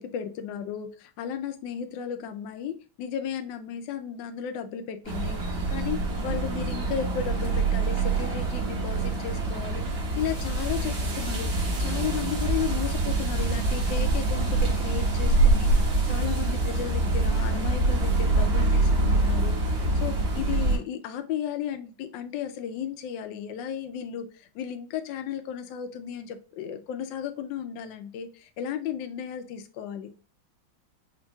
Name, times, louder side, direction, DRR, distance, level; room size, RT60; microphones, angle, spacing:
voice 1, 0.0-5.4 5.7-30.1, left 8 dB, 75° left, 8 dB, 1.2 m, -34 dB
sound 1, 5.0-20.8, right 2 dB, 75° right, 2.2 m, -25 dB
5.3 x 2.8 x 2.3 m, 0.36 s
omnidirectional pair, 2.2 m